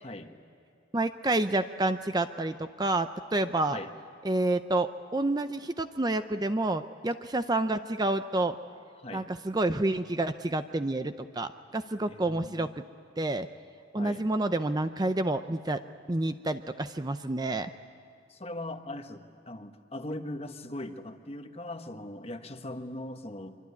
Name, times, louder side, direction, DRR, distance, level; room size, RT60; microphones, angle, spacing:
voice 1, 0.0-0.3 3.7-3.9 8.9-9.3 12.1-12.7 13.9-14.3 18.3-23.6, left 1 dB, 30° left, 7 dB, 1.3 m, -40 dB
voice 2, 0.9-3.8 4.2-8.6 9.1-12.8 13.2-13.5 13.9-15.8 16.1-17.7, right 2 dB, 20° right, 9 dB, 0.6 m, -29 dB
25.0 x 24.5 x 9.6 m, 2.6 s
head